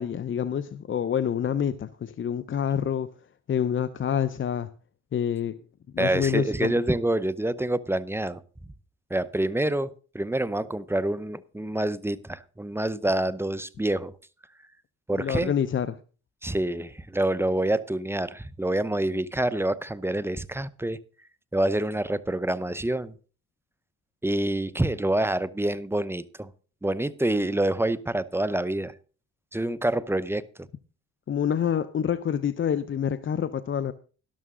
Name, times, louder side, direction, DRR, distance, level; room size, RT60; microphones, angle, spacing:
voice 1, 0.0-3.1 3.5-4.7 5.1-5.6 5.9-6.7 15.2-16.0 31.3-33.9, left 8 dB, 40° left, 0.7 m, -27 dB
voice 2, 6.0-8.4 9.1-14.1 15.1-15.5 16.4-21.0 21.5-23.1 24.2-26.5 26.8-28.9 29.5-30.5, right 1 dB, 10° right, 0.7 m, -27 dB
12.5 x 12.0 x 3.7 m
cardioid pair, 90°, 30 cm